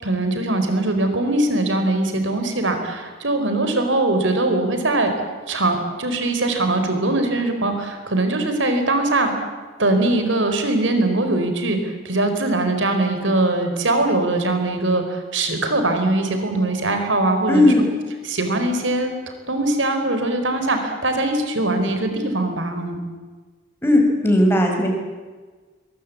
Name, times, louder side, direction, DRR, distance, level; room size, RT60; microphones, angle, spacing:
voice 1, 0.0-9.5 9.8-17.7 18.2-19.1 19.5-23.0, right 2 dB, 80° right, 6 dB, 4.6 m, -21 dB
voice 2, 17.5-17.8 23.8-24.9, left 1 dB, 10° left, 1 dB, 5.2 m, -16 dB
22.5 x 22.5 x 8.6 m, 1.4 s
head